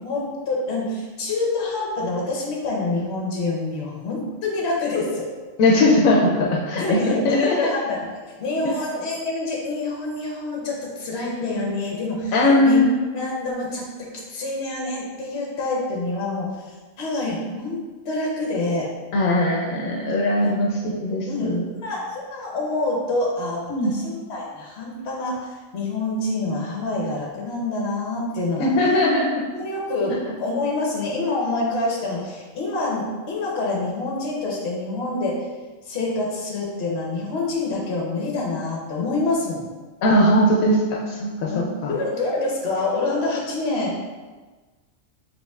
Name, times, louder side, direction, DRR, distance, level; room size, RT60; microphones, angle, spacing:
voice 1, 0.0-5.3 6.7-12.8 13.1-13.8 14.3-17.8 18.0-18.9 20.4-20.6 21.3-28.7 29.5-35.5 35.8-39.7 41.5-44.0, left 2 dB, 55° left, -2 dB, 1.1 m, -26 dB
voice 2, 5.6-7.7 12.3-13.0 19.1-21.7 23.7-23.9 28.6-29.4 40.0-41.9, left 1 dB, 80° left, -1 dB, 1.0 m, -19 dB
5.1 x 3.2 x 2.3 m, 1.3 s
omnidirectional pair, 1.4 m